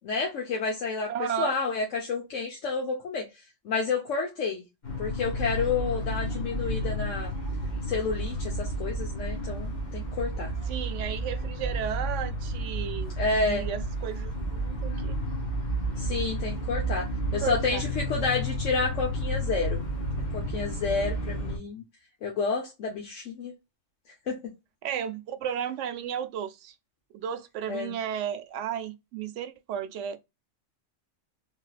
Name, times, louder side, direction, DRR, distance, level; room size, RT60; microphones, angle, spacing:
voice 1, 0.0-1.1 1.4-3.3 3.6-4.6 5.0-7.3 7.9-10.5 13.2-13.7 16.0-19.8 20.3-21.8 22.2-23.5 24.3-24.4 27.7-27.9, left 4 dB, 80° left, 1.2 m, -30 dB
voice 2, 1.1-1.5 10.7-15.1 17.4-17.8 24.8-26.7 27.1-30.2, right 9 dB, 75° right, 0.9 m, -34 dB
sound 1, 4.8-21.6, right 1 dB, 40° left, 1.0 m, -31 dB
3.3 x 2.7 x 2.3 m
omnidirectional pair, 1.3 m